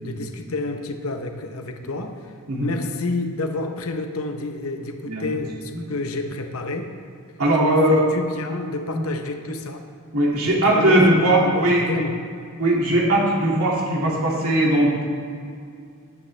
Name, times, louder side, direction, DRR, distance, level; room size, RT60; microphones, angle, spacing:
voice 1, 0.0-2.3 2.6-6.9 7.6-9.8 10.5-12.2, left 2 dB, 70° left, 5 dB, 0.8 m, -29 dB
voice 2, 7.4-8.0 8.9-9.0 10.1-11.9 12.6-15.0, right 1 dB, 90° right, -4 dB, 2.2 m, -19 dB
15.5 x 10.0 x 3.3 m, 2.3 s
head